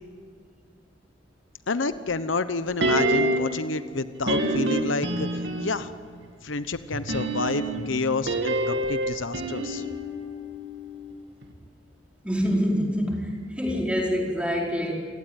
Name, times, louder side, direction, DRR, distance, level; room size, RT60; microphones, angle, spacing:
voice 1, 1.7-5.3 5.6-5.9 6.4-9.8, left 3 dB, 85° left, 12 dB, 1.0 m, -29 dB
sound 1, 2.8-3.6 4.3-5.9 6.9-11.1 11.4-11.5, right 1 dB, 65° right, 2.7 m, -27 dB
voice 2, 12.2-14.9, equal, 5° right, -2 dB, 4.7 m, -26 dB
29.0 x 18.0 x 9.3 m, 2.1 s
head